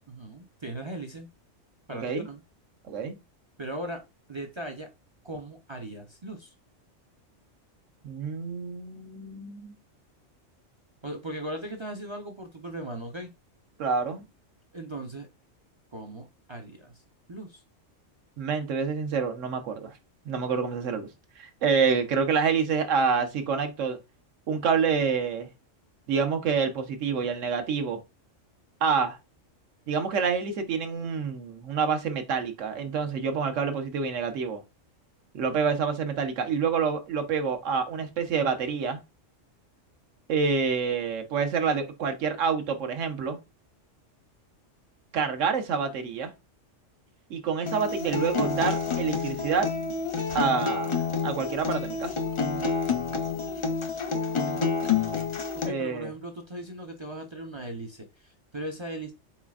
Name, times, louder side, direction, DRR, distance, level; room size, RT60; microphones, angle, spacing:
voice 1, 0.1-1.3 1.9-2.4 3.6-4.0 4.3-4.9 5.2-6.5 11.0-13.3 14.7-15.3 15.9-16.9 17.3-17.6 55.5-59.1, right 1 dB, 40° right, 0.4 m, -38 dB
voice 2, 2.9-3.2 8.0-9.7 13.8-14.2 18.4-20.0 20.2-21.1 21.4-24.0 24.5-25.5 26.1-28.0 28.8-29.2 29.9-34.6 35.3-39.0 40.3-43.4 45.1-46.3 47.3-49.7 50.3-51.0 51.2-52.1 55.6-56.1, right 5 dB, 75° right, 1.1 m, -27 dB
Acoustic guitar, 47.7-55.7, left 5 dB, 55° left, 0.3 m, -28 dB
4.3 x 4.1 x 2.4 m
omnidirectional pair, 1.3 m